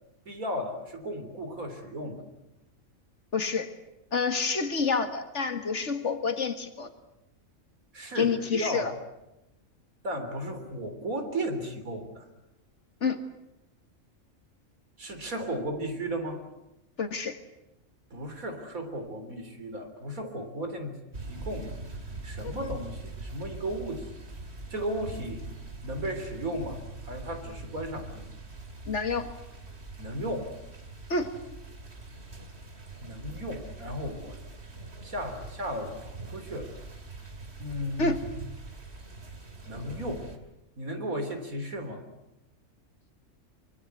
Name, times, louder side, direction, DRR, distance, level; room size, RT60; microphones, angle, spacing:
voice 1, 0.3-2.2 7.9-9.0 10.0-12.3 15.0-16.4 18.1-20.9 21.3-21.7 22.2-24.0 24.7-25.4 25.8-26.8 27.1-28.3 30.0-30.5 33.0-34.4 35.0-36.7 37.6-38.3 39.7-40.3 40.8-42.0, right 1 dB, 80° right, 6 dB, 4.0 m, -35 dB
voice 2, 3.3-3.7 4.1-6.9 8.2-8.9 13.0-13.2 17.0-17.4 22.4-22.7 28.9-29.3 31.1-31.3 38.0-38.3, left 4 dB, 55° left, 8 dB, 2.1 m, -28 dB
sound 1, 21.1-40.4, right 2 dB, 50° right, 2.9 m, -43 dB
24.5 x 24.5 x 8.1 m, 0.91 s
omnidirectional pair, 1.4 m